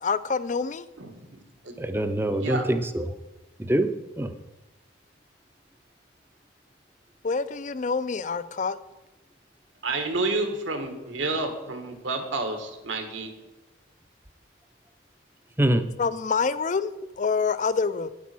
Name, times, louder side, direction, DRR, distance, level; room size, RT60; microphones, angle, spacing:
voice 1, 0.0-0.9 7.2-8.8 16.0-18.1, left 5 dB, 40° left, 15 dB, 0.4 m, -26 dB
voice 2, 1.0-1.7 2.3-2.6 9.8-13.3, right 3 dB, 75° right, 6 dB, 1.7 m, -30 dB
voice 3, 1.8-3.0 3.6-3.9 4.2-4.3 15.6-15.9, right 1 dB, 10° right, 9 dB, 0.6 m, -24 dB
9.3 x 8.4 x 6.1 m, 1.0 s
head